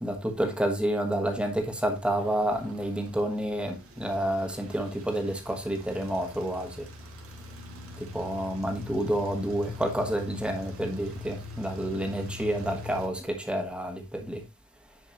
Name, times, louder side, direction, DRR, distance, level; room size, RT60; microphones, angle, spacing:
voice 1, 0.0-6.9 8.0-14.4, right 1 dB, 5° right, 1.3 m, -29 dB
sound 1, 1.1-13.1, left 2 dB, 90° right, 2.2 m, -44 dB
10.5 x 5.0 x 3.0 m
head